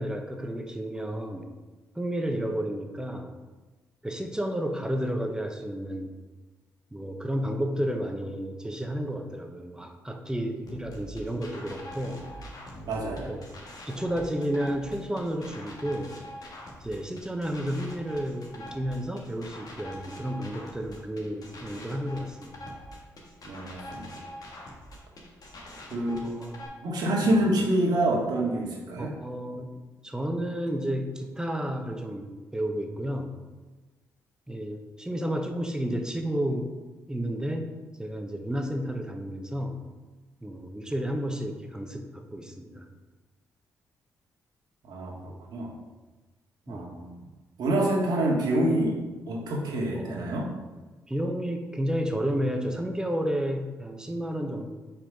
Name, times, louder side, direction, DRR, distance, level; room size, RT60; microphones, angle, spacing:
voice 1, 0.0-1.5 1.9-3.3 4.0-6.2 6.9-12.2 13.2-13.4 13.8-16.2 16.8-22.7 26.2-26.7 27.2-27.4 29.0-29.7 30.0-33.3 34.5-36.7 37.1-37.7 38.0-39.8 40.4-42.9 46.7-46.9 49.9-50.2 51.1-54.7, equal, 10° right, 4 dB, 1.0 m, -31 dB
sound 1, 10.7-26.7, equal, 60° left, 1.5 m, -44 dB
voice 2, 12.9-13.3 23.4-24.1 25.9-26.2 26.8-29.2 44.9-45.7 46.7-47.2 47.6-49.0 49.3-50.5, right 1 dB, 65° right, -2 dB, 1.6 m, -27 dB
4.9 x 4.3 x 5.3 m, 1.2 s
supercardioid pair, 50°, 7 cm